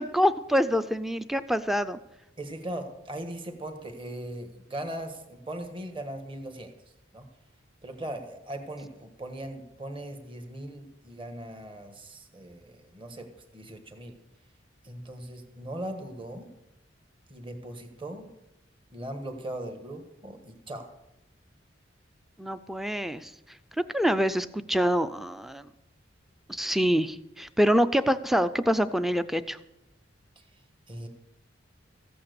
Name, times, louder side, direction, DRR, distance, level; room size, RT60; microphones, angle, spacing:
voice 1, 0.0-2.0 22.4-23.3 23.9-25.7 26.5-29.6, equal, ahead, 12 dB, 0.4 m, -25 dB
voice 2, 2.4-6.7 7.1-7.2 7.8-13.3 13.5-14.2 14.8-16.5 17.3-18.3 18.9-20.9 30.4-30.5 30.9-31.1, right 1 dB, 25° right, 6 dB, 1.4 m, -39 dB
14.5 x 8.6 x 6.7 m, 0.89 s
head